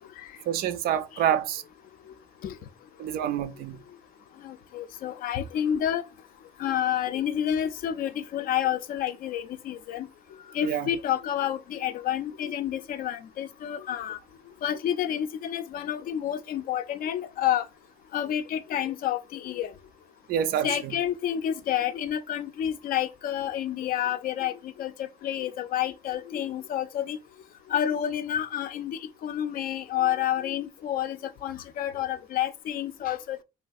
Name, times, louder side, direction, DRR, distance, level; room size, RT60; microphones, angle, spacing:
voice 1, 0.5-1.6 3.0-3.8 10.6-10.9 20.3-20.9, right 10 dB, 90° right, 0.4 m, -27 dB
voice 2, 4.4-6.0 6.6-10.1 10.5-14.2 14.6-17.7 18.1-19.7 20.6-27.2 27.7-33.4, left 10 dB, 70° left, 0.4 m, -29 dB
3.1 x 2.3 x 2.5 m
cardioid pair, 115°, 15 cm